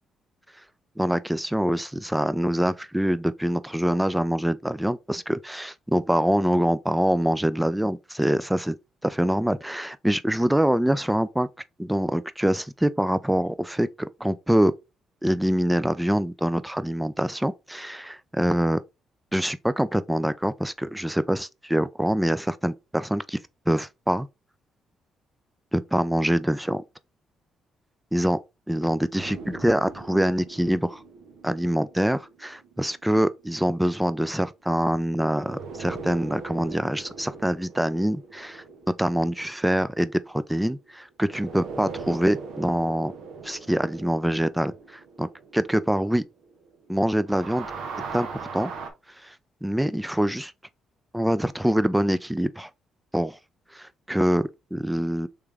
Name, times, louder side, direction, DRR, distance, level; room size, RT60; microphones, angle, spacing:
voice 1, 1.0-8.8 9.0-11.5 11.8-14.7 15.2-18.8 19.3-23.4 23.7-24.3 25.7-26.8 28.1-28.4 28.7-31.0 31.4-38.5 39.0-43.1 43.4-46.2 46.9-47.7 48.1-48.7 49.2-49.3 49.6-50.5 51.1-52.7 53.1-53.4 53.7-55.3, right 1 dB, 5° right, 0.4 m, -25 dB
sound 1, 29.1-33.6 35.3-40.8 41.2-46.9 47.2-48.9, right 4 dB, 75° right, 0.9 m, -40 dB
3.5 x 3.2 x 3.4 m
cardioid pair, 90°, 0 cm